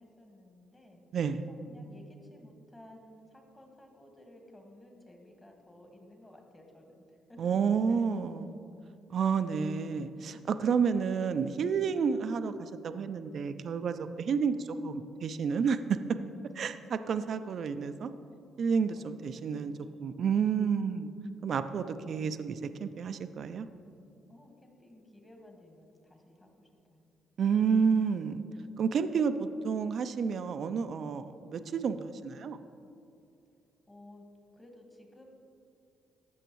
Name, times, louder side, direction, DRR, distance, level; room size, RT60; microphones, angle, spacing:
voice 1, 0.0-1.0 1.5-7.6 7.9-8.0 18.9-20.0 24.3-27.0 33.9-34.3 34.6-35.2, left 1 dB, 20° left, 2 dB, 1.6 m, -55 dB
voice 2, 1.1-1.4 7.4-8.6 9.1-16.0 16.5-18.1 18.6-19.7 20.0-21.1 21.4-23.7 27.4-28.4 28.8-32.6, right 6 dB, 60° right, 10 dB, 0.4 m, -30 dB
14.5 x 6.3 x 3.1 m, 2.5 s
cardioid pair, 90°, 0 cm